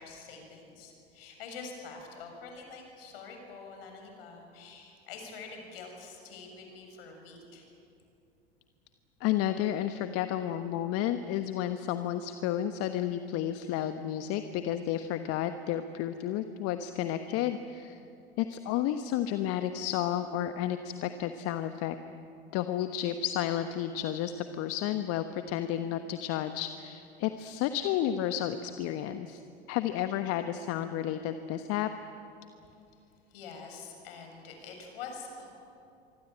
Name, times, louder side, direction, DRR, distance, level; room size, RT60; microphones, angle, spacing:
voice 1, 0.0-7.7 33.3-35.5, left 4 dB, 65° left, 3 dB, 7.2 m, -46 dB
voice 2, 9.2-18.0 18.4-21.9 22.5-29.4 29.7-31.9, left 11 dB, 50° left, 9 dB, 1.3 m, -31 dB
25.5 x 25.0 x 9.2 m, 2.7 s
figure-of-eight pair, 80°, 31 cm